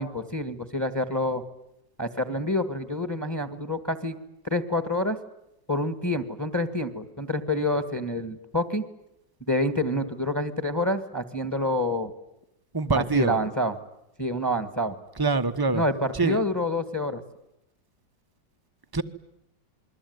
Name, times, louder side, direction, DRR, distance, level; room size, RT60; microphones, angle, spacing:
voice 1, 0.0-1.4 2.0-4.2 4.4-5.2 5.7-8.8 9.5-12.1 12.9-13.8 14.2-14.9 15.7-17.2, left 1 dB, 10° left, 12 dB, 1.5 m, -27 dB
voice 2, 12.7-13.4 15.2-15.8 16.2-16.4 18.9-19.0, right 3 dB, 15° right, 10 dB, 0.9 m, -24 dB
28.5 x 22.0 x 9.5 m, 0.84 s
omnidirectional pair, 2.0 m